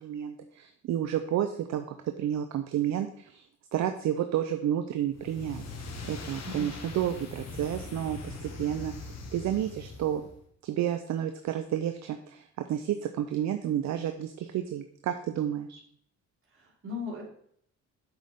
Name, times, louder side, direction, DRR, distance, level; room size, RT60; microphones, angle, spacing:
voice 1, 0.0-1.8 2.2-3.5 3.7-5.6 6.0-8.9 9.3-10.2 10.6-15.8, right 10 dB, 65° right, 7 dB, 0.6 m, -31 dB
sound 1, 5.1-10.4, left 3 dB, 60° left, 1.5 m, -41 dB
voice 2, 6.4-6.7 16.5-17.2, left 4 dB, 45° right, -5 dB, 3.5 m, -38 dB
8.2 x 6.5 x 3.6 m, 0.65 s
cardioid pair, 90°, 30 cm